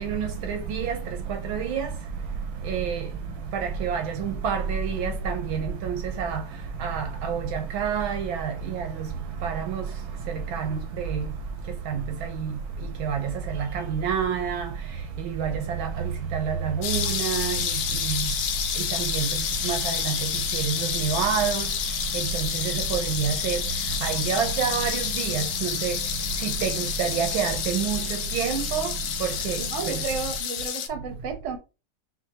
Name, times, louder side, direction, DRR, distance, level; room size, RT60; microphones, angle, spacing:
voice 1, 0.0-0.9 1.5-1.9 2.7-3.0 3.8-5.3 6.2-6.3 6.8-7.4 7.7-8.4 9.4-9.8 13.1-13.2 14.0-14.6 15.4-15.5 16.8-17.5 19.7-19.9 21.0-21.6 22.9-23.6 24.0-25.4 25.8-25.9 26.4-26.5 27.0-28.0 28.3-28.8 29.5-29.6, right 7 dB, 75° right, 1.4 m, -26 dB
sound 1, 16.8-30.9, left 8 dB, 85° left, 0.8 m, -29 dB
voice 2, 29.6-31.6, right 6 dB, 50° right, 0.9 m, -33 dB
5.8 x 2.7 x 2.8 m
omnidirectional pair, 2.4 m